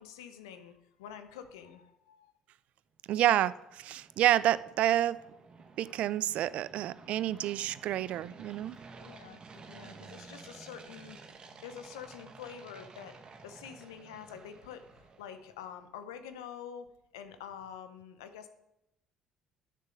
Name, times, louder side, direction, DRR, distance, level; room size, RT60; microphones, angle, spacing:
voice 1, 0.0-2.3 9.0-11.2 11.6-13.2 13.4-18.5, left 8 dB, 85° left, 9 dB, 0.7 m, -47 dB
voice 2, 3.1-5.2 5.8-8.8, right 13 dB, 65° right, 18 dB, 0.3 m, -29 dB
sound 1, 3.2-15.5, right 4 dB, 40° right, 1.2 m, -53 dB
10.0 x 6.6 x 5.2 m, 0.87 s
hypercardioid pair, 55°, 2 cm